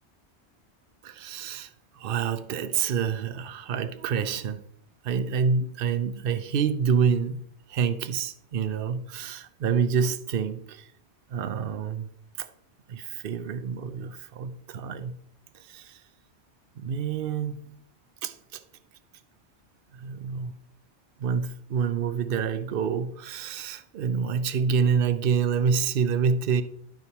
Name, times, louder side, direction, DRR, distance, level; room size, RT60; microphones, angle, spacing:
voice 1, 1.0-4.6 5.0-7.4 7.7-10.9 11.3-12.1 12.4-12.5 12.9-15.2 15.5-16.0 16.8-17.8 18.2-18.6 19.9-20.6 21.2-26.6, right 6 dB, 60° right, 0.8 m, -27 dB
11.5 x 4.8 x 4.2 m
omnidirectional pair, 1.1 m